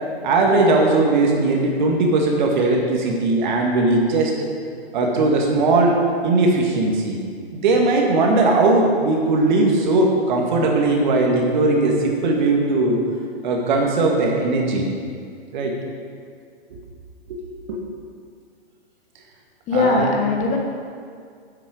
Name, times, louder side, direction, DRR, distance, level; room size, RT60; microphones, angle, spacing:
voice 1, 0.2-4.3 4.9-7.2 7.5-13.0 13.4-14.8 15.5-15.7 17.3-17.4 17.7-17.8 19.7-20.1, right 2 dB, 45° right, 1 dB, 1.9 m, -19 dB
voice 2, 19.7-20.6, left 3 dB, 20° left, 1 dB, 1.4 m, -20 dB
9.7 x 7.8 x 4.9 m, 2.2 s
figure-of-eight pair, 115°, 32 cm